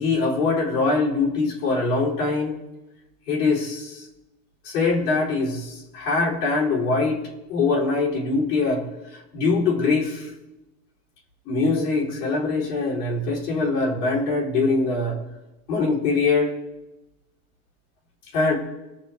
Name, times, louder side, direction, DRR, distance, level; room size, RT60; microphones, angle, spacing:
voice 1, 0.0-2.6 3.3-4.1 4.6-7.2 7.5-10.3 11.5-15.2 15.7-16.5 18.3-18.5, left 3 dB, 90° left, -4 dB, 3.7 m, -23 dB
20.0 x 6.7 x 3.5 m, 1.0 s
supercardioid pair, 115°, 46 cm